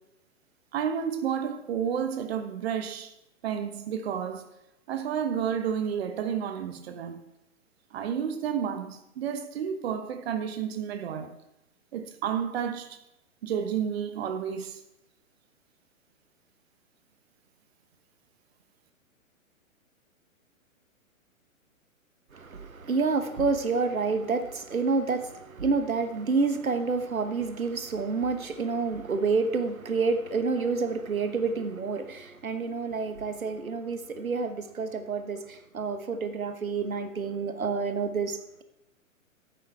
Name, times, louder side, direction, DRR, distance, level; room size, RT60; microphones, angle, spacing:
voice 1, 0.7-3.1 3.4-4.5 4.9-7.2 7.9-11.4 11.9-13.0 13.4-14.8, right 8 dB, 50° right, 1.1 m, -31 dB
voice 2, 22.3-38.6, right 4 dB, 85° right, 1.1 m, -28 dB
13.5 x 9.2 x 3.4 m
figure-of-eight pair, 115°, 41 cm